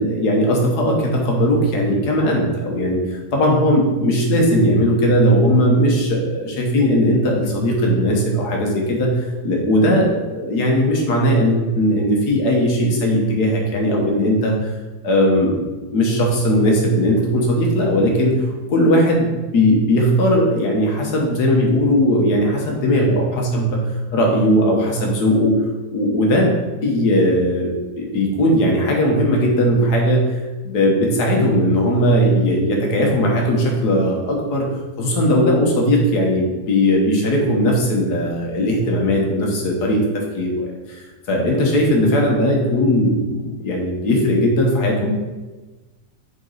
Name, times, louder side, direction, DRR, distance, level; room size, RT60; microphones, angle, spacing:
voice 1, 0.0-14.7 15.0-18.4 18.7-23.7 24.1-25.6 25.9-26.5 26.8-34.7 35.0-40.7 41.0-45.2, equal, 75° left, 0 dB, 1.7 m, -18 dB
7.2 x 4.0 x 3.9 m, 1.2 s
omnidirectional pair, 1.7 m